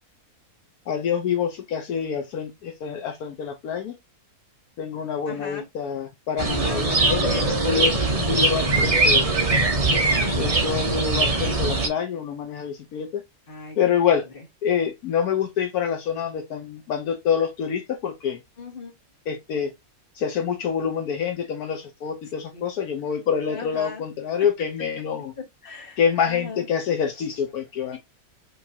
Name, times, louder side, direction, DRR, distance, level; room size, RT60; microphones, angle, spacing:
voice 1, 0.9-3.9 4.8-9.3 10.4-13.2 13.8-14.3 14.6-18.4 19.3-19.7 20.1-25.3 26.0-28.0, left 7 dB, 75° left, 1.2 m, -26 dB
voice 2, 5.3-5.6 6.6-7.4 10.2-10.6 13.5-13.9 18.6-18.9 22.5-22.6 23.5-24.0 25.6-26.0 26.3-26.6 27.9-28.0, left 4 dB, 40° left, 1.5 m, -37 dB
sound 1, 6.4-11.9, right 2 dB, 30° right, 0.9 m, -21 dB
5.2 x 3.1 x 2.7 m
omnidirectional pair, 1.6 m